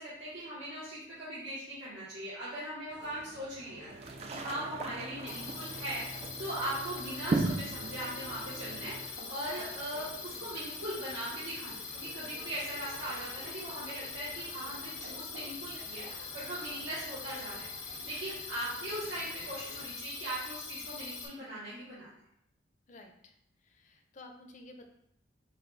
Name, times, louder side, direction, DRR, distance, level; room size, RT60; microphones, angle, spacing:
voice 1, 0.0-22.1, right 1 dB, 85° right, -10 dB, 1.4 m, -40 dB
sound 1, 2.9-19.9, right 1 dB, 60° right, 0.7 m, -53 dB
sound 2, 3.9-9.1, right 3 dB, 35° right, 0.3 m, -37 dB
sound 3, 5.3-21.3, left 5 dB, 80° left, 0.8 m, -43 dB
voice 2, 22.9-23.3 23.6-24.9, left 2 dB, 40° left, 4 dB, 0.5 m, -52 dB
5.6 x 2.4 x 3.9 m, 0.78 s
head